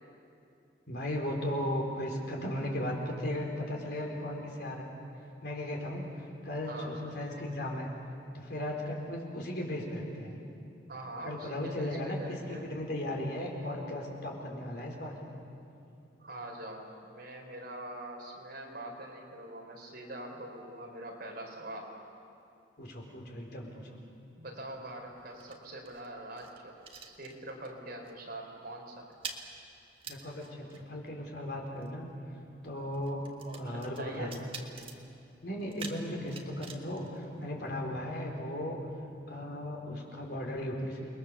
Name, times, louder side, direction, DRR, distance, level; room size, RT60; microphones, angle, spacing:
voice 1, 0.9-4.9 5.4-6.1 6.4-7.9 8.3-10.4 11.2-15.1 22.8-23.7 30.1-32.1 32.6-34.4 35.4-38.8 39.3-41.1, left 1 dB, 60° left, 0 dB, 4.3 m, -36 dB
voice 2, 6.6-6.9 10.9-12.7 16.2-21.9 24.4-26.7 27.0-29.1 33.4-34.4, right 1 dB, 55° right, 0 dB, 4.1 m, -43 dB
sound 1, 24.4-27.8 28.0-28.3 28.6-38.0, right 4 dB, 30° right, 1.7 m, -49 dB
29.5 x 21.0 x 7.0 m, 2.6 s
head